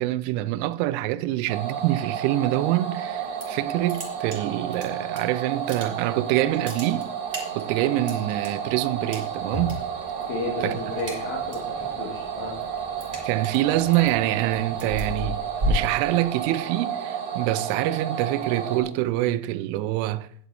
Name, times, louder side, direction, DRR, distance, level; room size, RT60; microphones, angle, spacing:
voice 1, 0.0-7.1 7.6-9.8 10.6-10.8 13.2-20.3, right 15 dB, 85° right, 3.0 m, -25 dB
sound 1, 1.5-18.8, right 7 dB, 70° right, 1.8 m, -32 dB
sound 2, 3.1-3.6 3.9-5.2 5.5-6.2 6.5-8.5 9.1-9.7 10.0-10.4 10.7-11.7 12.1-16.6, equal, 25° right, 1.6 m, -32 dB
sound 3, 8.6-15.0, left 2 dB, 40° left, 2.5 m, -43 dB
voice 2, 10.3-12.6, left 3 dB, 75° left, 4.2 m, -33 dB
11.0 x 9.3 x 4.1 m
omnidirectional pair, 5.6 m